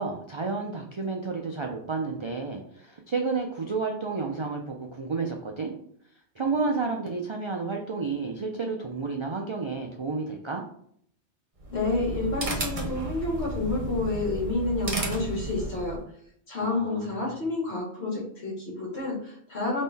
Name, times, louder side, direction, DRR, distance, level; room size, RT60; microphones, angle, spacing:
voice 1, 0.0-5.7 6.4-10.6 16.6-17.4, right 4 dB, 50° right, 2 dB, 0.3 m, -31 dB
sound 1, 11.6-16.0, right 2 dB, 35° right, 0.9 m, -33 dB
voice 2, 11.7-16.0 16.5-19.8, left 2 dB, 70° left, -3 dB, 1.7 m, -29 dB
3.7 x 3.1 x 4.0 m, 0.66 s
omnidirectional pair, 1.2 m